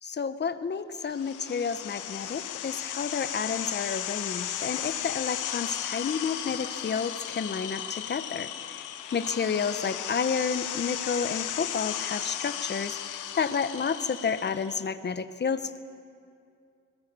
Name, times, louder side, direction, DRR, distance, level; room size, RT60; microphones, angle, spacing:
voice 1, 0.0-8.8 9.1-15.8, left 6 dB, 35° left, 11 dB, 1.1 m, -30 dB
sound 1, 1.1-14.8, left 11 dB, 85° left, 1.2 m, -35 dB
22.0 x 20.5 x 7.0 m, 2.4 s
cardioid pair, 90°, 30 cm